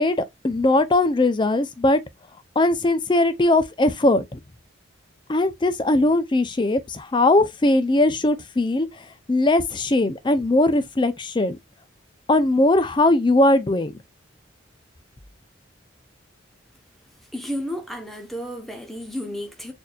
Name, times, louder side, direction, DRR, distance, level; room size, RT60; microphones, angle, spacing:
voice 1, 0.0-2.0 2.6-4.4 5.3-8.9 9.3-11.6 12.3-13.9, left 2 dB, 25° left, 0.4 m, -20 dB
voice 2, 17.3-19.7, equal, ahead, 0.8 m, -32 dB
6.6 x 2.7 x 2.3 m
head